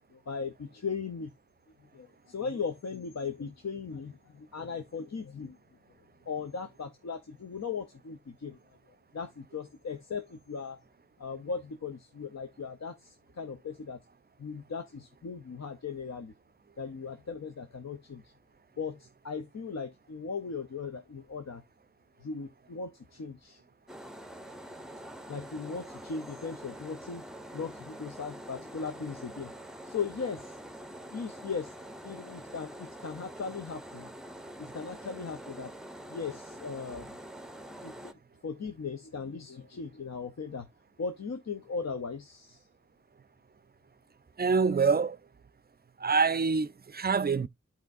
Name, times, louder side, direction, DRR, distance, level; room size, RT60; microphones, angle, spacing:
voice 1, 0.1-1.3 1.9-5.6 6.3-8.6 9.1-10.8 11.2-14.0 14.4-16.3 16.8-18.3 18.8-21.6 22.2-23.6 25.3-27.2 27.5-29.5 29.8-30.6 31.1-31.7 32.0-34.1 34.6-35.7 36.1-37.1 37.8-38.1 38.4-40.7 41.0-42.7, left 5 dB, 65° left, 0.7 m, -38 dB
sound 1, 23.9-38.1, right 1 dB, ahead, 0.7 m, -45 dB
voice 2, 44.4-45.2 46.0-47.5, right 5 dB, 35° right, 0.4 m, -25 dB
11.5 x 4.4 x 2.5 m
wide cardioid pair, 50°, 29 cm